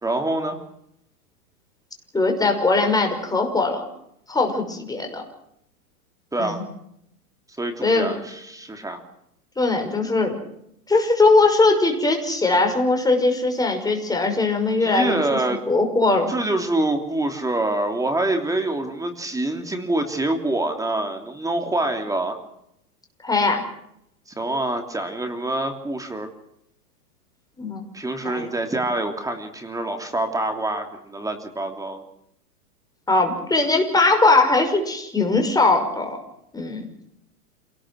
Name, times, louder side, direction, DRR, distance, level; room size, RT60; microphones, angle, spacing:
voice 1, 0.0-0.6 6.3-6.6 7.6-9.0 14.8-15.6 16.3-22.4 24.3-26.3 27.9-32.0, right 2 dB, 5° right, 5 dB, 3.1 m, -26 dB
voice 2, 2.1-3.9 4.3-5.2 6.4-6.6 7.8-8.1 9.6-10.3 10.9-15.4 15.7-16.3 23.2-23.6 27.6-27.8 28.2-28.5 33.1-36.2 36.5-36.9, left 3 dB, 10° left, 4 dB, 5.9 m, -20 dB
27.5 x 19.0 x 6.3 m, 0.75 s
hypercardioid pair, 120°, 45 cm